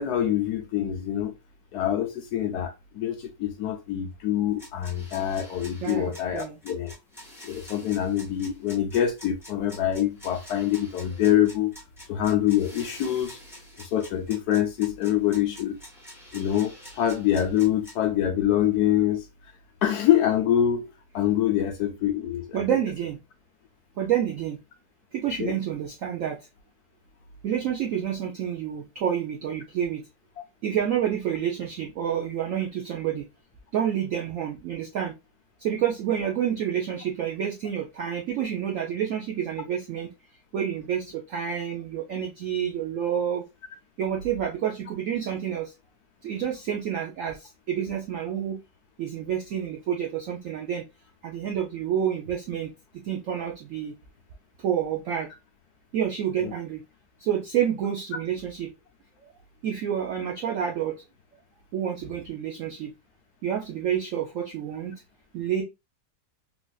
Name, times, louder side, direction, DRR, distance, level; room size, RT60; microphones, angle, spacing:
voice 1, 0.0-1.3 1.7-6.9 7.4-11.7 12.1-13.4 13.8-15.8 16.3-19.2 19.8-22.6 25.4-25.6 56.4-56.5, left 11 dB, 70° left, 1.0 m, -25 dB
sound 1, 4.6-17.9, equal, ahead, 1.0 m, -47 dB
voice 2, 5.8-6.6 22.5-23.2 24.0-24.6 25.1-26.5 27.4-30.0 30.6-33.2 33.7-35.2 35.6-40.1 40.5-43.4 44.0-45.7 46.2-48.6 49.0-50.8 51.2-52.7 53.0-53.9 54.6-55.3 55.9-56.8 57.2-58.7 59.6-61.0 61.7-62.9 63.4-65.0 65.3-65.6, right 9 dB, 75° right, 0.7 m, -28 dB
3.9 x 2.5 x 2.2 m
omnidirectional pair, 2.0 m